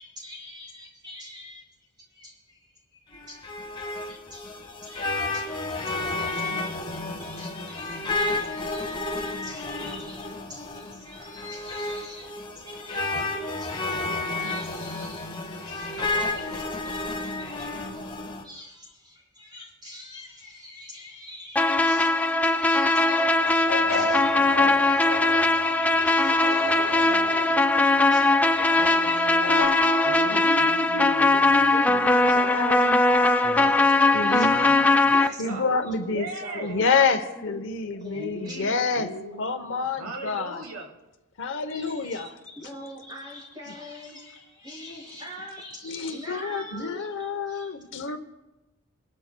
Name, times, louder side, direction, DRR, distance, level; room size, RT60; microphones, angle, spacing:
voice 1, 0.0-1.7 2.0-13.9 14.2-17.7 18.4-33.1 34.2-34.5 35.1-35.2 35.4-36.1 36.4-36.9 37.2-38.9 41.7-47.7, left 1 dB, 20° right, -4 dB, 5.9 m, -44 dB
sound 1, 3.1-18.4, left 2 dB, 20° left, 1.4 m, -31 dB
voice 2, 13.1-13.8 16.0-16.7 28.8-32.4 33.4-35.6 36.1-36.8 38.1-41.0 45.0-45.1, right 1 dB, 65° right, 3 dB, 1.2 m, -40 dB
sound 2, 21.6-35.3, left 2 dB, 5° left, 0.3 m, -20 dB
sound 3, 23.0-29.7, left 5 dB, 80° left, 1.1 m, -35 dB
voice 3, 29.5-33.8 34.1-34.8 35.4-36.3 36.5-39.1 39.4-40.6 41.4-42.3 45.8-48.2, left 4 dB, 60° left, 7 dB, 0.8 m, -29 dB
28.5 x 12.5 x 2.2 m, 1.0 s
head